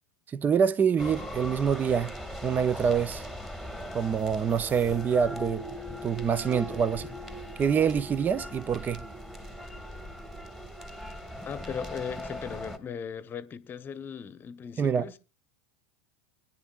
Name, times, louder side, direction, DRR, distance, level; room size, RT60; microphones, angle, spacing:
voice 1, 0.3-2.1 2.4-3.2 3.9-5.7 6.0-7.1 7.6-9.0 14.8-15.1, right 7 dB, 25° right, 0.6 m, -26 dB
sound 1, 1.0-12.8, equal, 5° right, 1.7 m, -39 dB
voice 2, 11.5-15.2, left 7 dB, 30° left, 0.9 m, -38 dB
24.0 x 10.0 x 2.4 m
hypercardioid pair, 90°, 7 cm